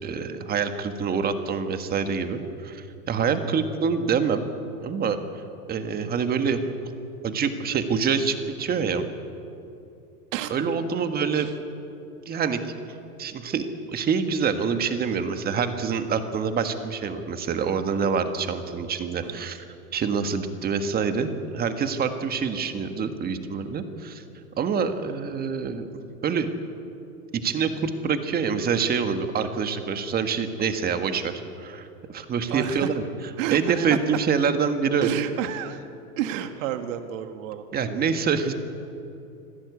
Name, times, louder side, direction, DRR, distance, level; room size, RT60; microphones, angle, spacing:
voice 1, 0.0-4.4 4.8-5.4 5.7-6.6 7.2-9.1 10.5-11.5 12.2-12.8 13.2-19.6 19.9-24.2 24.6-25.9 26.2-26.5 27.3-31.3 31.6-33.0 33.5-35.1 37.7-38.5, right 6 dB, 20° right, 8 dB, 1.5 m, -26 dB
voice 2, 32.5-32.9 33.4-34.0 35.0-35.8 36.2-37.7, right 11 dB, 55° right, 8 dB, 1.7 m, -30 dB
26.0 x 16.0 x 8.3 m, 2.8 s
hypercardioid pair, 140°, 47 cm